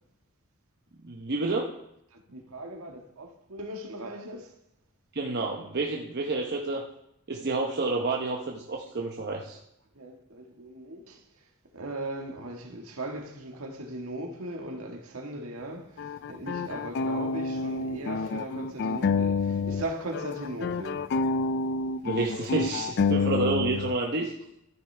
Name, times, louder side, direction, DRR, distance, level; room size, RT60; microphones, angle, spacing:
voice 1, 1.0-1.7 5.1-6.8 7.3-9.6 22.0-24.3, right 3 dB, 50° right, 0.9 m, -29 dB
voice 2, 2.1-4.5 7.4-7.5 9.9-11.2 11.7-21.0 23.2-23.3, right 1 dB, 70° right, 1.6 m, -38 dB
sound 1, 16.0-19.9 20.1-24.0, left 4 dB, 50° left, 0.3 m, -28 dB
13.5 x 10.0 x 3.3 m
head